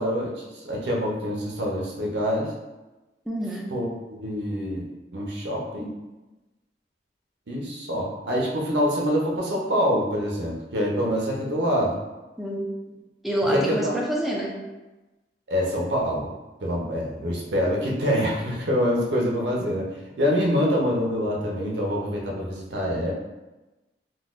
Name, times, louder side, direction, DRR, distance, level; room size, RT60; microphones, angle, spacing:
voice 1, 0.0-2.5 3.7-3.8 4.1-4.9 5.1-5.9 7.5-12.0 13.5-14.0 15.5-16.3 16.6-19.9 20.2-23.1, equal, 70° right, -2 dB, 0.7 m, -25 dB
voice 2, 3.3-3.7 12.4-12.8 13.2-14.6, right 1 dB, ahead, -3 dB, 0.3 m, -27 dB
3.9 x 2.2 x 2.4 m, 1.1 s
head